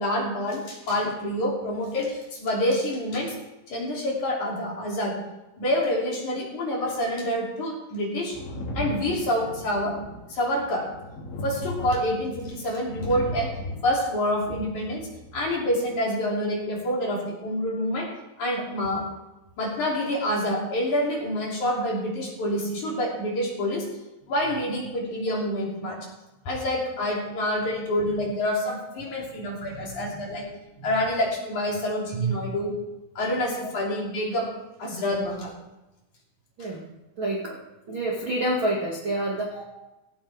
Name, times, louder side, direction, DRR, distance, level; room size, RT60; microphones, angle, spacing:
voice 1, 0.0-3.3 3.7-5.2 5.6-8.4 8.7-9.9 10.3-10.9 11.4-13.5 13.8-18.1 18.4-19.1 19.6-23.9 24.3-26.0 26.5-30.5 30.8-32.7 33.2-34.5 34.8-35.5 39.5-39.6, left 1 dB, 45° left, -3 dB, 4.1 m, -27 dB
Thunder, 8.3-15.7 16.8-16.9, left 1 dB, 75° left, 5.2 m, -36 dB
voice 2, 29.6-30.0 30.8-30.9 32.1-32.4 36.6-36.8 37.2-37.6 37.9-39.6, right 2 dB, 40° right, -3 dB, 1.8 m, -28 dB
17.0 x 16.5 x 3.6 m, 1.0 s
omnidirectional pair, 5.4 m